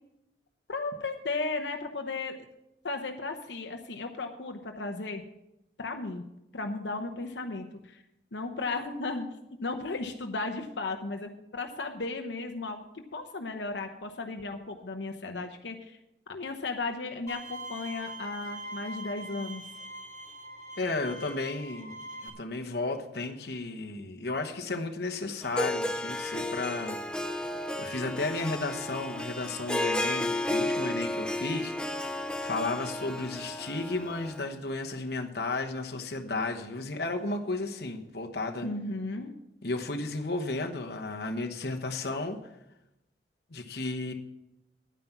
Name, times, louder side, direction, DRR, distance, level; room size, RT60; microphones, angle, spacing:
voice 1, 0.7-2.4 2.8-5.2 5.8-6.2 6.5-8.0 8.3-9.3 9.6-16.0 16.3-19.6 38.6-39.3, left 3 dB, 85° left, 4 dB, 0.9 m, -35 dB
Bowed string instrument, 17.3-22.3, right 1 dB, 20° left, 1.8 m, -42 dB
voice 2, 20.8-27.0 27.8-38.7 39.6-42.4 43.5-44.1, left 2 dB, 60° left, 3 dB, 1.1 m, -33 dB
Harp, 25.4-34.4, left 1 dB, 5° left, 0.5 m, -33 dB
10.5 x 9.4 x 5.9 m, 0.89 s
head